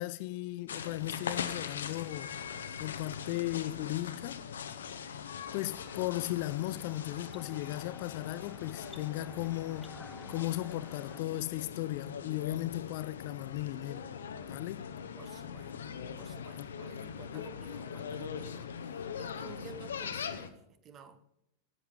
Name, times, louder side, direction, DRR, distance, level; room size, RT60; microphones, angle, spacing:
voice 1, 0.0-2.3 2.8-4.4 5.5-10.0 10.3-14.1 14.5-14.9 16.6-16.7 17.3-17.5, left 17 dB, 50° left, 0.4 m, -36 dB
sound 1, 0.7-20.5, left 7 dB, 65° left, 0.9 m, -41 dB
sound 2, 5.5-11.2, left 3 dB, 10° left, 1.0 m, -53 dB
voice 2, 15.2-15.7 16.2-21.2, right 6 dB, 30° right, 1.1 m, -52 dB
10.5 x 8.3 x 9.0 m
figure-of-eight pair, 90°, 0 cm